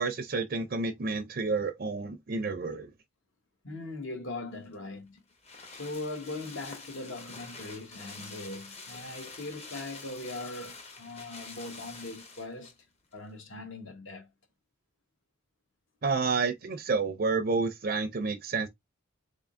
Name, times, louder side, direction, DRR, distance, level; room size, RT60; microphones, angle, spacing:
voice 1, 0.0-2.9 16.0-18.7, right 4 dB, 45° right, 0.5 m, -30 dB
voice 2, 3.6-5.2 5.7-12.7 13.1-14.3, left 2 dB, 60° left, 1.2 m, -40 dB
sound 1, 4.6-12.8 13.1-13.2, left 3 dB, 30° left, 0.8 m, -47 dB
3.8 x 3.5 x 2.5 m
head